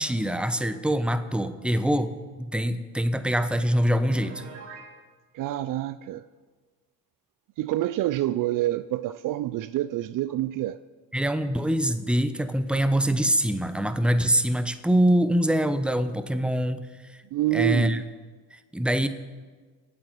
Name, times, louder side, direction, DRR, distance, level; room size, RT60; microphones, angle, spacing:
voice 1, 0.0-2.1 2.4-4.4 11.1-16.9 17.5-18.0 18.5-19.1, equal, ahead, 1.0 m, -24 dB
Piano, 4.1-4.9, right 5 dB, 75° right, 3.5 m, -43 dB
voice 2, 5.3-6.2 7.6-10.8 17.3-18.1, right 14 dB, 55° right, 0.5 m, -27 dB
24.0 x 8.6 x 4.6 m
hypercardioid pair, 70°, 40 cm